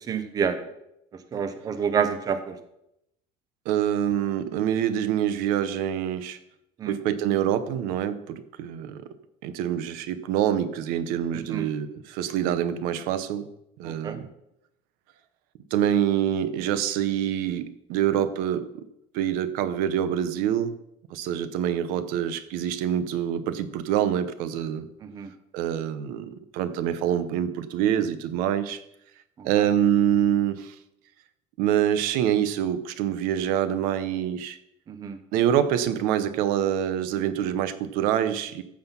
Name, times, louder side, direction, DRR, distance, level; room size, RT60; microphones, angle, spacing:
voice 1, 0.1-0.6 1.3-2.6 6.8-7.0 11.3-11.7 13.8-14.2 25.0-25.3 29.4-29.6 34.9-35.2, right 7 dB, 25° right, 10 dB, 0.7 m, -28 dB
voice 2, 3.7-6.4 6.9-9.0 9.4-13.5 13.8-14.3 15.7-18.8 19.1-20.7 21.1-24.9 25.5-28.8 29.4-30.7 31.6-34.6 35.3-38.6, right 10 dB, 65° right, 13 dB, 0.8 m, -26 dB
14.5 x 5.9 x 5.7 m, 0.82 s
cardioid pair, 175°, 16 cm